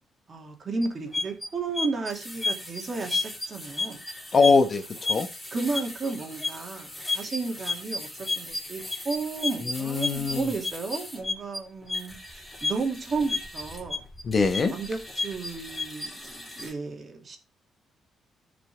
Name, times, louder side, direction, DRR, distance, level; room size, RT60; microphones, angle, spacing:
voice 1, 0.3-4.0 5.5-8.1 8.4-14.0 14.7-17.4, right 4 dB, 40° right, 3 dB, 2.5 m, -33 dB
sound 1, 0.8-16.7, left 3 dB, 10° left, 2.7 m, -34 dB
voice 2, 4.3-5.3 9.6-10.5 14.2-14.7, left 4 dB, 40° left, 8 dB, 1.1 m, -22 dB
14.5 x 5.3 x 3.4 m, 0.30 s
cardioid pair, 90°, 0 cm